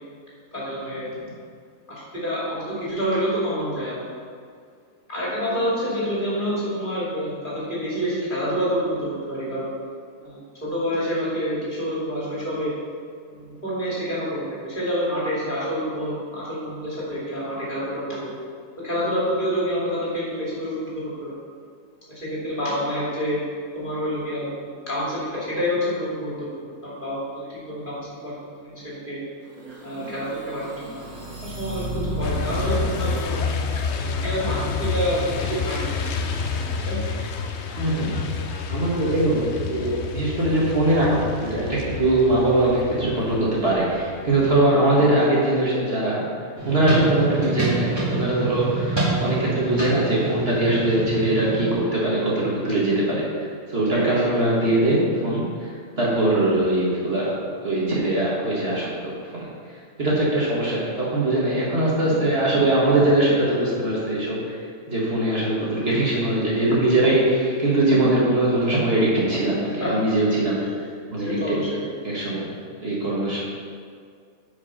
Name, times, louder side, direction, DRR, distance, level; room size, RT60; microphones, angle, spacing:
voice 1, 0.5-1.2 1.9-4.0 5.1-9.7 10.2-12.7 13.3-18.3 18.8-21.3 22.1-23.4 23.7-29.2 29.8-31.1 31.4-33.4 33.9-35.9 36.9-37.1 54.0-54.5 69.8-70.0 70.6-70.7 71.2-71.9, equal, 35° left, -8 dB, 2.8 m, -28 dB
sound 1, 29.5-33.3, right 1 dB, 85° right, 2.0 m, -33 dB
Truck, 32.2-44.5, left 5 dB, 60° left, 0.8 m, -29 dB
voice 2, 37.8-38.1 38.7-46.2 46.7-59.5 60.0-64.6 64.9-70.6 71.1-71.6 72.0-72.5 72.8-73.4, right 1 dB, 45° right, -6 dB, 1.9 m, -21 dB
sound 2, 46.6-51.7, right 3 dB, 20° right, 2.2 m, -27 dB
9.4 x 5.3 x 5.7 m, 2.1 s
omnidirectional pair, 1.5 m